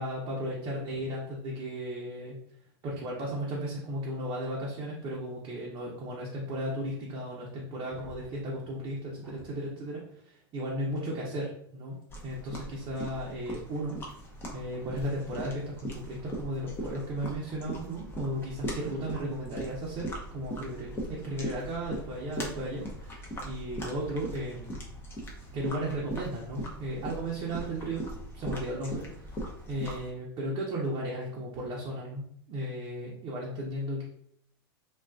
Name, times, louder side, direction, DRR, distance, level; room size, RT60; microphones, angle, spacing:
voice 1, 0.0-2.4 2.8-12.0 12.2-13.9 14.5-24.8 25.5-28.0 28.3-29.4 29.7-34.0, right 1 dB, 35° right, -4 dB, 0.7 m, -35 dB
sound 1, 7.9-9.6 11.0-11.1 12.7-12.8 14.7-14.8 16.2-16.4, right 2 dB, ahead, 1.0 m, -54 dB
sound 2, 12.1-30.1, equal, 15° left, 0.6 m, -40 dB
2.3 x 2.3 x 2.3 m, 0.67 s
hypercardioid pair, 110°, 13 cm